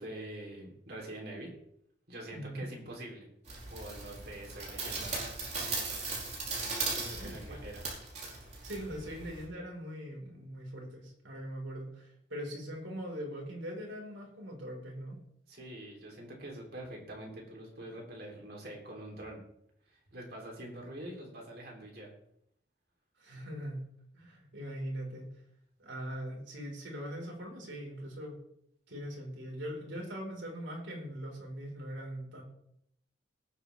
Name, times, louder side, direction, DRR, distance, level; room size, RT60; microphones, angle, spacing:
voice 1, 0.0-1.5 2.1-3.3 3.7-5.1 6.9-7.8 15.5-19.4 19.9-22.1, right 1 dB, 55° right, 0 dB, 3.6 m, -45 dB
voice 2, 2.3-2.6 7.2-7.6 8.6-15.2 23.2-23.8 24.1-25.3 25.8-28.4 28.9-32.4, equal, 80° right, -1 dB, 5.0 m, -41 dB
sound 1, 3.5-9.4, right 3 dB, 35° right, 4.7 m, -38 dB
19.0 x 8.3 x 3.6 m, 0.72 s
head